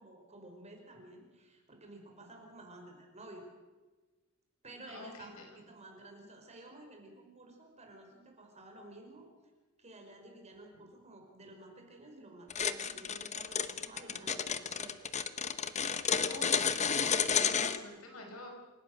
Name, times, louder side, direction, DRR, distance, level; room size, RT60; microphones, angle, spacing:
voice 1, 0.0-3.4 4.6-5.4 5.7-9.3 9.8-15.0 17.0-17.7, right 1 dB, 30° right, 2 dB, 5.1 m, -52 dB
voice 2, 4.9-5.5 16.3-16.8 17.4-18.5, left 2 dB, 65° left, 2 dB, 5.1 m, -46 dB
sound 1, 12.5-17.8, left 7 dB, 30° left, 0.9 m, -31 dB
28.5 x 17.5 x 6.5 m, 1.2 s
head